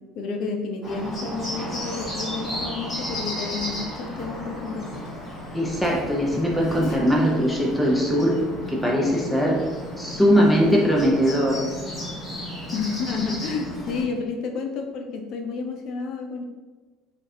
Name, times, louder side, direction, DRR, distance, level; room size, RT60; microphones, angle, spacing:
voice 1, 0.1-5.0 12.7-16.4, left 4 dB, 55° left, 3 dB, 0.6 m, -30 dB
Bird, 0.8-14.0, equal, 20° left, 1.3 m, -34 dB
voice 2, 5.5-8.3 8.7-9.6 10.0-11.6, equal, ahead, -3 dB, 0.7 m, -20 dB
4.4 x 2.5 x 4.3 m, 1.3 s
cardioid pair, 130°, 0 cm